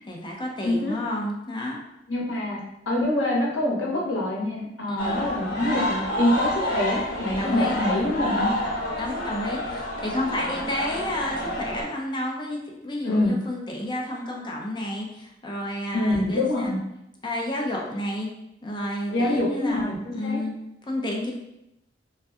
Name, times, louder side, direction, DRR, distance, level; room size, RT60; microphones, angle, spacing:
voice 1, 0.1-1.8 4.9-5.2 7.4-7.8 9.0-16.8 17.2-18.3 18.6-20.5 20.9-21.3, left 1 dB, 25° left, -1 dB, 0.5 m, -31 dB
voice 2, 2.1-2.6 2.9-8.5 13.0-13.4 15.9-16.8 19.1-20.4, left 1 dB, 80° left, -3 dB, 0.9 m, -25 dB
sound 1, 5.0-11.8, left 1 dB, 55° left, 1.2 m, -28 dB
2.6 x 2.2 x 3.4 m, 0.86 s
head